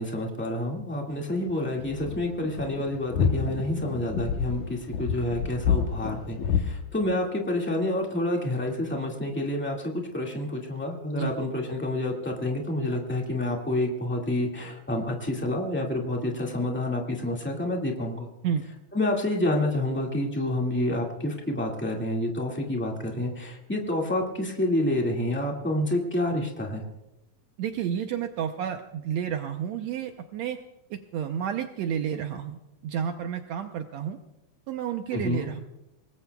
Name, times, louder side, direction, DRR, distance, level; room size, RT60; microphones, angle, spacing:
voice 1, 0.0-18.3 18.9-26.9 35.1-35.5, left 1 dB, 10° left, -1 dB, 0.6 m, -28 dB
sound 1, 1.1-6.6, left 7 dB, 65° left, 2.2 m, -28 dB
voice 2, 27.6-30.6 30.9-34.2 34.7-35.6, right 8 dB, 85° right, 5 dB, 1.5 m, -31 dB
25.0 x 20.0 x 2.3 m, 0.92 s
omnidirectional pair, 4.1 m